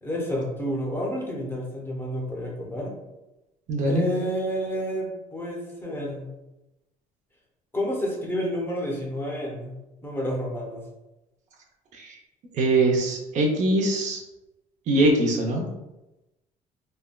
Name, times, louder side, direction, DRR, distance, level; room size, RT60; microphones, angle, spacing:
voice 1, 0.0-2.9 3.7-6.3 7.7-9.8 10.0-10.8, equal, 15° left, -2 dB, 0.6 m, -30 dB
voice 2, 3.7-4.1 11.9-12.2 12.5-14.2 14.9-15.7, right 2 dB, 55° right, 1 dB, 0.5 m, -22 dB
3.4 x 2.2 x 2.2 m, 0.98 s
cardioid pair, 140°, 15 cm